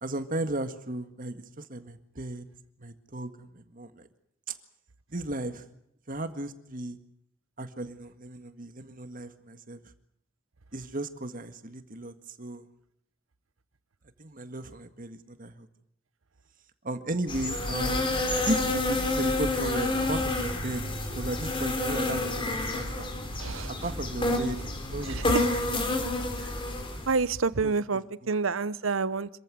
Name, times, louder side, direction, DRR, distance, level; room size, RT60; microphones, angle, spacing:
voice 1, 0.0-2.5 2.8-4.1 4.5-4.6 5.1-5.6 6.1-7.0 7.6-9.8 10.7-12.7 14.2-15.7 16.8-20.8 21.1-22.5 22.7-23.1 23.7-26.1 27.6-27.7 28.2-28.3, right 1 dB, 45° right, 9 dB, 1.8 m, -35 dB
sound 1, 17.3-27.2, left 2 dB, 25° left, 3.6 m, -29 dB
voice 2, 23.4-23.7 25.1-25.2 27.1-29.3, right 4 dB, 85° right, 17 dB, 0.9 m, -28 dB
26.5 x 15.0 x 9.3 m, 0.73 s
head